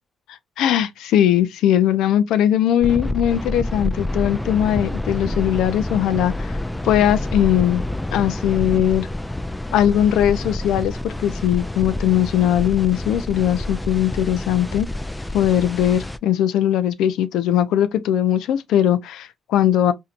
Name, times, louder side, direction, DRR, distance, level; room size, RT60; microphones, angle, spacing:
voice 1, 0.6-6.6 6.8-7.8 8.1-9.1 9.7-14.9 15.3-19.9, left 11 dB, 85° left, 0.5 m, -19 dB
sound 1, 2.8-16.2, left 1 dB, 10° left, 0.4 m, -28 dB
4.4 x 2.7 x 2.5 m
cardioid pair, 90°, 0 cm